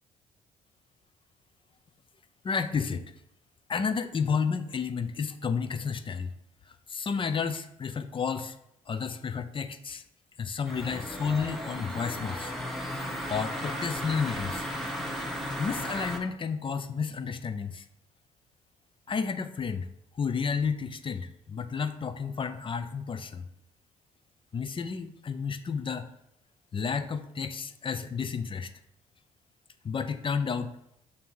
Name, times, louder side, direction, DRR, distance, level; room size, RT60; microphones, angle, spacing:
voice 1, 2.4-3.1 3.7-6.3 6.9-8.6 8.9-10.0 10.4-12.5 13.3-14.7 15.6-17.8 19.1-19.9 20.1-23.4 24.5-26.1 26.7-28.7 29.8-30.7, left 6 dB, 35° left, 10 dB, 0.6 m, -31 dB
sound 1, 10.7-16.2, equal, ahead, 1.1 m, -35 dB
6.5 x 2.8 x 5.4 m, 0.78 s
supercardioid pair, 60°, 16 cm